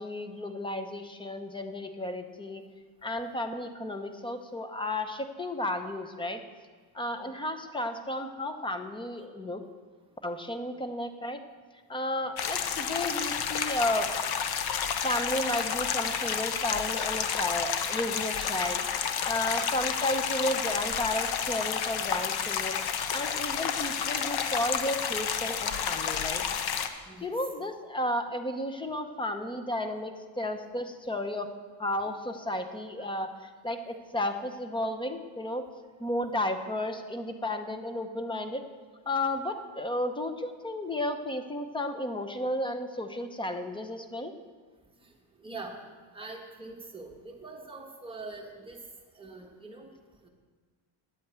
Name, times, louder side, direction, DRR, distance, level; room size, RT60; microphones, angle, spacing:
voice 1, 0.0-2.6 3.0-6.4 6.9-9.6 10.2-11.4 11.9-14.1 15.0-22.8 23.1-26.4 27.2-31.5 31.8-33.3 33.6-35.6 36.0-38.6 39.1-44.3, left 1 dB, 10° left, 7 dB, 0.6 m, -33 dB
sound 1, 12.4-26.9, left 7 dB, 50° left, 0.9 m, -30 dB
voice 2, 45.4-45.8 46.1-48.8 49.1-49.9 50.2-50.3, right 3 dB, 10° right, 0 dB, 1.4 m, -44 dB
10.0 x 8.6 x 8.0 m, 1.5 s
cardioid pair, 150°, 50 cm